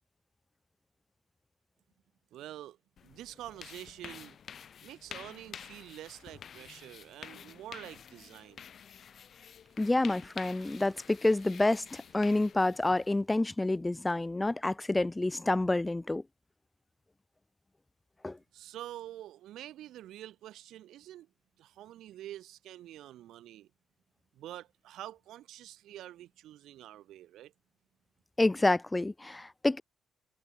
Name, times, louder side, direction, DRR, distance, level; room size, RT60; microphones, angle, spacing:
voice 1, 2.3-2.8 3.0-4.4 4.8-8.7 18.5-21.3 21.6-23.7 24.3-27.5, right 13 dB, 80° right, 1.1 m, -47 dB
sound 1, 3.0-13.2, left 8 dB, 55° left, 3.7 m, -50 dB
sound 2, 8.8-14.2 14.5-14.6, right 3 dB, 20° right, 7.4 m, -64 dB
voice 2, 9.8-16.2 18.2-18.4 28.4-29.8, left 2 dB, 15° left, 0.5 m, -28 dB
cardioid pair, 90°, 0 cm